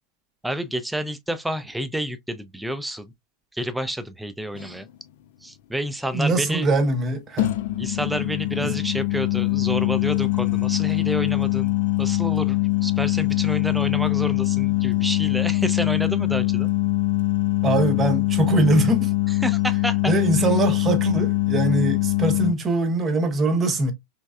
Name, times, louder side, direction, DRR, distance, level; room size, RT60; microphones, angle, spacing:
voice 1, 0.4-3.1 3.5-4.9 5.4-6.7 7.8-16.7 19.4-20.5, right 1 dB, 5° right, 0.4 m, -29 dB
sound 1, 4.5-4.7 7.4-22.5, left 16 dB, 55° left, 0.4 m, -23 dB
voice 2, 6.1-7.5 8.6-8.7 17.6-19.1 20.1-23.9, right 2 dB, 25° right, 0.8 m, -22 dB
3.4 x 3.1 x 2.3 m
figure-of-eight pair, 90°, 0 cm